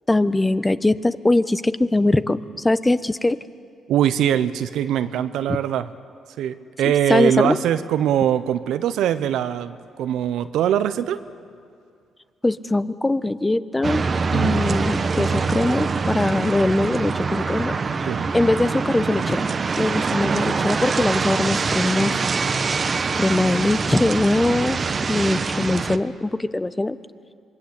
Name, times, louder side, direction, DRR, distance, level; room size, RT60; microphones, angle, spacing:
voice 1, 0.1-3.4 5.5-5.6 7.1-7.6 12.4-14.0 14.3-17.8 18.3-19.5 19.8-22.3 23.2-24.8 25.1-27.0, left 2 dB, 20° left, 13 dB, 1.1 m, -21 dB
voice 2, 3.9-5.9 6.4-11.2 14.3-14.6 18.0-18.3, right 10 dB, 75° right, 12 dB, 0.9 m, -22 dB
sound 1, 13.8-26.0, right 4 dB, 45° right, 1.2 m, -24 dB
26.5 x 21.5 x 8.3 m, 2.3 s
hypercardioid pair, 50°, 0 cm